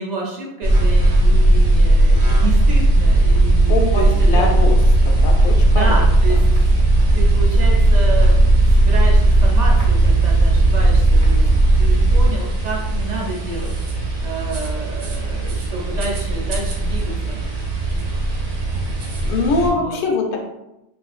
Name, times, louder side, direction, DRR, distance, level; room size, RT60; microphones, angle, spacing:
voice 1, 0.0-4.5 5.7-6.4 7.1-11.5 11.8-17.4 19.6-20.0, right 3 dB, 45° right, -2 dB, 0.6 m, -30 dB
sound 1, 0.6-19.7, right 1 dB, 80° right, 1.1 m, -16 dB
voice 2, 3.7-4.8 5.0-6.0 19.2-20.5, left 3 dB, 60° left, 2 dB, 0.7 m, -22 dB
3.2 x 2.5 x 2.4 m, 0.92 s
omnidirectional pair, 1.2 m